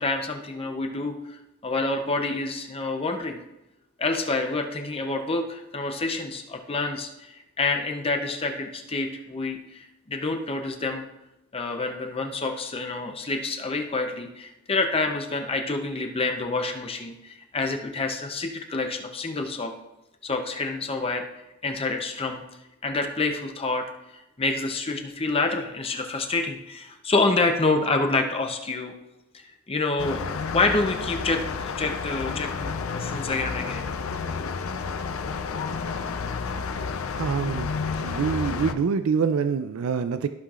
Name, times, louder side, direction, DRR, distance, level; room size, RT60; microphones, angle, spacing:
voice 1, 0.0-3.4 4.0-11.0 11.5-19.7 20.2-21.3 21.6-22.4 22.8-23.8 24.4-28.9 29.3-30.2 30.5-33.9, left 3 dB, 25° left, 0.6 m, -27 dB
sound 1, 30.0-38.7, left 5 dB, 80° left, 0.5 m, -31 dB
voice 2, 37.2-37.7 38.0-40.3, right 6 dB, 80° right, 0.4 m, -25 dB
14.5 x 5.7 x 2.4 m
head